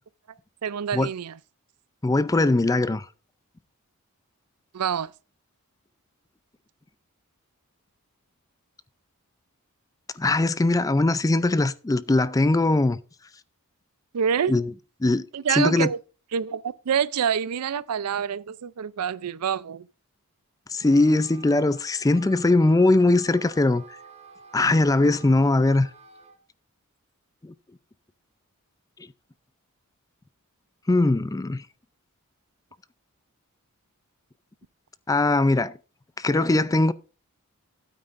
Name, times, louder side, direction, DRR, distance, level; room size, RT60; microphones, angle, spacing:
voice 1, 0.6-1.4 4.7-5.1 14.1-14.5 15.3-16.0 16.3-19.9, right 7 dB, 90° right, 0.5 m, -26 dB
voice 2, 2.0-3.1 10.2-13.0 14.5-14.7 15.0-15.2 15.5-15.9 20.7-23.8 24.5-25.9 27.4-27.5 30.9-31.6 35.1-35.7 36.2-36.9, left 2 dB, 15° left, 0.4 m, -21 dB
Wind instrument woodwind instrument, 20.7-26.4, right 6 dB, 30° right, 1.3 m, -49 dB
12.5 x 9.1 x 2.5 m
head